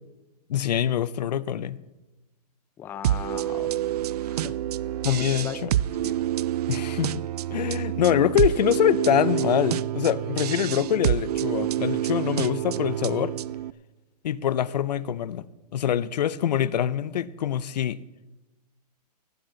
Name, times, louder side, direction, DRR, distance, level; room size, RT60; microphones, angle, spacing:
voice 1, 0.5-1.8 5.0-5.7 6.7-7.2 7.5-13.4 14.2-15.5 15.7-18.0, left 10 dB, 80° left, 19 dB, 0.6 m, -24 dB
voice 2, 2.8-3.9 4.2-4.6 5.2-6.2 6.7-6.8, left 9 dB, 10° left, 12 dB, 0.4 m, -40 dB
sound 1, 3.0-13.7, right 12 dB, 70° right, 0.4 m, -27 dB
18.0 x 10.5 x 3.8 m, 1.1 s
hypercardioid pair, 155°, 21 cm